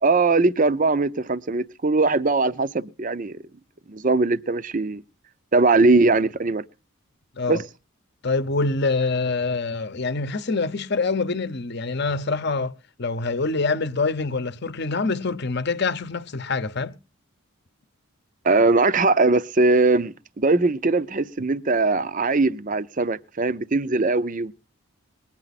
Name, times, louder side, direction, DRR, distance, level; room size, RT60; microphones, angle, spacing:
voice 1, 0.0-3.4 3.9-5.0 5.5-6.6 7.5-7.6 18.4-24.5, right 3 dB, 35° right, 0.6 m, -20 dB
voice 2, 8.2-17.0, left 3 dB, 50° left, 0.8 m, -25 dB
21.0 x 8.9 x 4.1 m
head